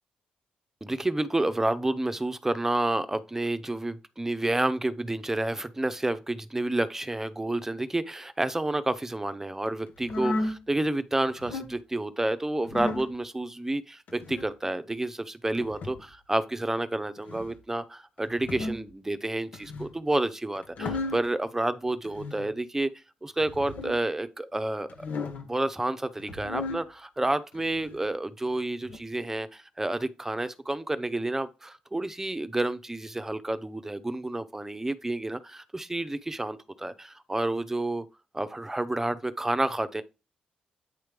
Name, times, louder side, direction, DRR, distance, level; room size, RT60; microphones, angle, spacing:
voice 1, 0.8-22.9 23.2-25.1 25.4-38.0 38.3-40.0, right 2 dB, 15° right, 0.8 m, -30 dB
sound 1, 10.0-10.6 11.3-11.7 12.6-13.1 14.1-14.5 15.6-16.1 17.2-17.6 18.3-18.9 19.5-20.0 20.6-21.3 22.0-22.5 23.4-24.0 24.9-25.5 26.2-26.8 27.5-28.0 28.8-29.0, left 2 dB, 75° left, 1.3 m, -34 dB
8.9 x 3.1 x 5.2 m
cardioid pair, 70°, 3 cm